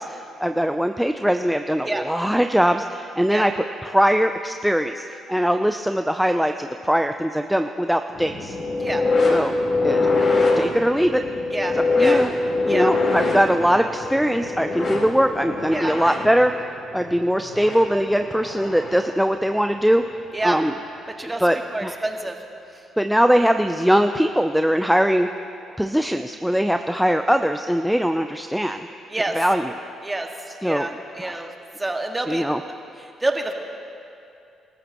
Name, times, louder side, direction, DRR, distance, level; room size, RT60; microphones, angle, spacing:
voice 1, 0.0-8.5 9.3-9.5 9.8-10.1 10.6-11.2 11.7-12.3 12.6-16.5 16.9-20.0 20.4-20.7 21.4-22.1 23.0-25.3 25.8-28.9 29.3-29.7 30.6-30.9 31.2-31.5 32.3-32.6, equal, ahead, 6 dB, 0.6 m, -21 dB
sound 1, 8.1-19.1 20.4-20.6 21.5-21.6, left 3 dB, 55° left, 4.2 m, -24 dB
voice 2, 11.5-12.2 12.7-12.9 15.7-15.9 20.3-20.6 21.2-21.4 21.7-22.3 29.1-29.4 30.0-30.3 30.6-31.5 31.8-32.5 33.2-33.5, right 2 dB, 20° right, 2 dB, 1.9 m, -27 dB
25.0 x 14.0 x 3.1 m, 2.6 s
supercardioid pair, 55°, 0 cm